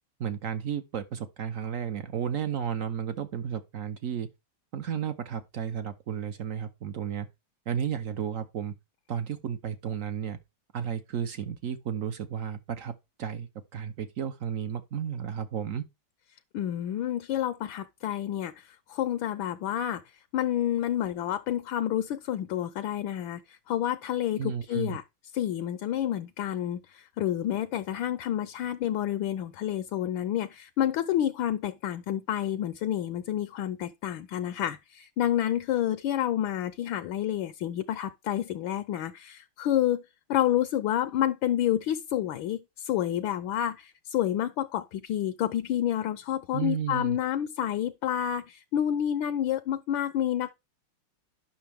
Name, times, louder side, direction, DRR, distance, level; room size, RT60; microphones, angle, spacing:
voice 1, 0.2-4.3 4.7-7.3 7.7-8.7 9.1-10.4 10.7-12.9 13.2-15.8 24.4-25.0 46.5-47.2, right 8 dB, 70° right, 0.7 m, -33 dB
voice 2, 16.5-20.0 20.3-25.0 25.3-40.0 40.3-42.6 42.8-50.5, left 11 dB, 75° left, 1.3 m, -29 dB
10.0 x 6.2 x 3.5 m
omnidirectional pair, 2.3 m